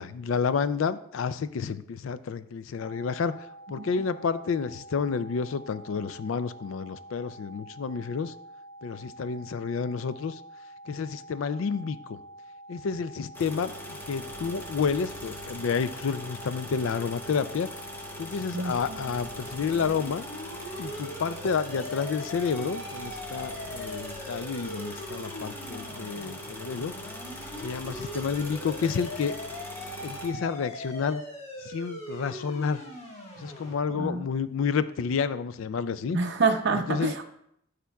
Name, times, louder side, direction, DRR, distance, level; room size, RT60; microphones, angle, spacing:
voice 1, 0.0-3.3 3.7-8.3 8.8-10.4 10.9-12.2 12.7-17.7 18.2-20.2 20.8-26.9 27.6-29.3 30.0-31.2 31.6-32.8 33.4-36.2 36.7-37.1, left 5 dB, 65° left, 13 dB, 0.4 m, -30 dB
sound 1, 2.8-20.9, right 1 dB, 30° right, 1.7 m, -47 dB
sound 2, 13.3-30.3, left 1 dB, 10° left, 0.8 m, -41 dB
voice 2, 18.5-19.0 34.0-34.3 36.1-37.3, right 4 dB, 55° right, 5 dB, 0.6 m, -27 dB
sound 3, 19.3-33.7, left 1 dB, 30° left, 1.5 m, -41 dB
12.5 x 5.0 x 2.3 m, 0.74 s
head